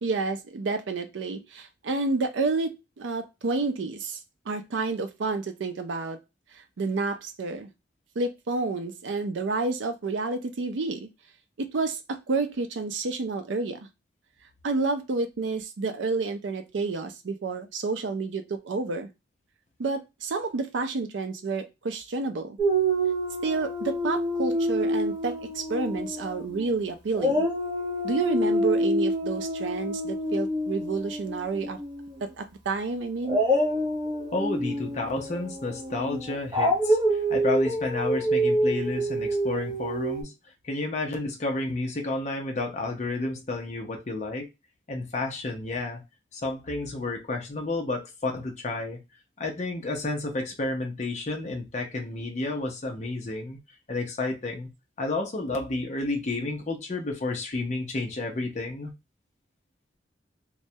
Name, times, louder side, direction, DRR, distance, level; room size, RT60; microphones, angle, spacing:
voice 1, 0.0-2.7 3.0-4.2 4.5-6.2 6.8-7.7 8.2-11.1 11.6-13.8 14.6-19.1 19.8-22.6 23.4-27.4 28.0-31.8 32.2-33.4, right 3 dB, 85° right, 0.5 m, -29 dB
Dog, 22.6-26.7 27.1-32.1 33.2-40.2, right 1 dB, 20° right, 0.7 m, -27 dB
voice 2, 34.3-40.3 40.6-44.5 44.9-46.0 46.3-49.0 49.4-53.6 53.9-54.7 55.0-58.9, left 2 dB, 40° left, 0.5 m, -31 dB
2.2 x 2.1 x 2.7 m
head